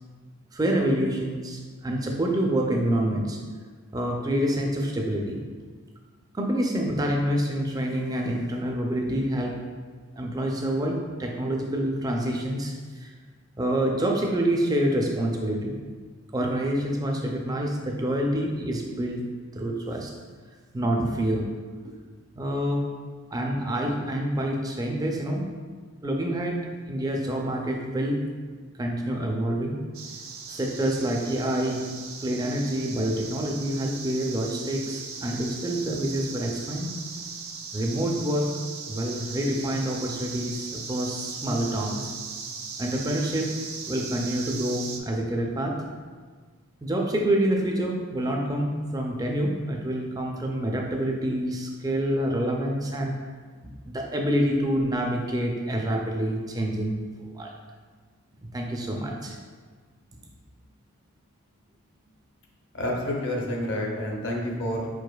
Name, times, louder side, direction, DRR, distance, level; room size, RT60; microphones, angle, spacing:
voice 1, 0.5-3.4 3.9-5.5 6.3-9.6 10.1-13.1 13.6-15.8 16.3-19.2 19.5-20.1 20.7-21.5 21.8-21.9 22.4-22.9 23.3-25.5 26.0-28.3 28.8-29.8 30.5-31.8 32.2-36.9 37.7-42.1 42.8-43.6 43.9-45.8 46.8-53.2 53.6-57.5 58.5-59.4, right 1 dB, 15° right, 1 dB, 0.4 m, -27 dB
sound 1, 29.9-45.0, right 5 dB, 80° right, 0.5 m, -38 dB
voice 2, 62.7-64.9, left 1 dB, 55° left, -1 dB, 0.7 m, -29 dB
4.8 x 4.7 x 2.3 m, 1.5 s
head